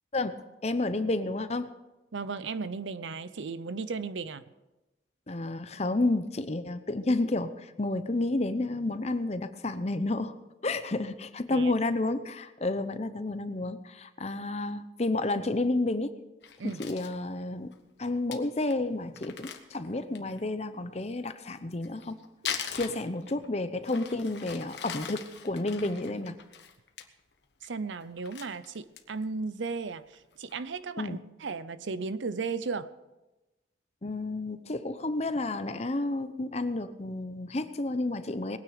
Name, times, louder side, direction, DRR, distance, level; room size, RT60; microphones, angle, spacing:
voice 1, 0.1-1.7 5.3-10.3 10.6-16.2 16.6-17.7 18.0-22.2 22.7-26.4 31.0-31.2 34.0-38.6, left 2 dB, 35° left, 11 dB, 0.7 m, -31 dB
voice 2, 2.1-4.4 11.5-11.7 16.6-16.8 27.6-32.9, right 4 dB, 80° right, 14 dB, 0.7 m, -35 dB
Crumpling crinkling, 16.4-17.2 17.7-17.8 18.0-18.1 18.3-18.4 18.7-18.8 19.2-20.4 21.6-23.5 23.8-27.0 27.4-27.7 28.0-29.2 29.6-29.7 30.1-30.6, left 7 dB, 65° left, 1.2 m, -41 dB
20.5 x 9.5 x 5.0 m, 1.0 s
head